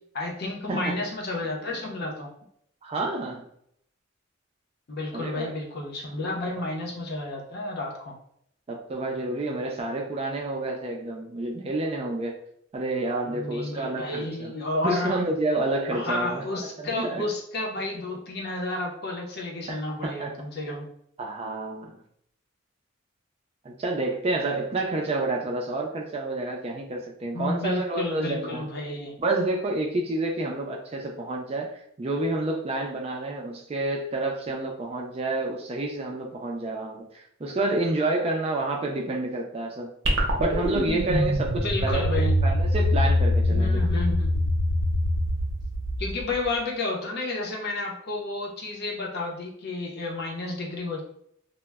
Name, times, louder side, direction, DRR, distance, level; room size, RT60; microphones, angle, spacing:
voice 1, 0.1-2.3 4.9-8.1 13.3-15.1 15.9-20.9 27.3-29.1 41.6-42.3 43.5-44.4 46.0-51.0, left 2 dB, 50° left, 0 dB, 0.6 m, -31 dB
voice 2, 2.8-3.4 5.1-5.5 8.7-12.3 12.7-14.5 14.8-16.4 16.8-17.2 19.7-20.4 21.2-22.0 23.6-28.7 29.2-39.9 40.4-42.1 42.4-43.9, right 2 dB, 30° right, 1 dB, 0.3 m, -29 dB
sound 1, 40.0-46.6, left 1 dB, 70° right, 0.7 m, -24 dB
2.1 x 2.0 x 3.3 m, 0.69 s
head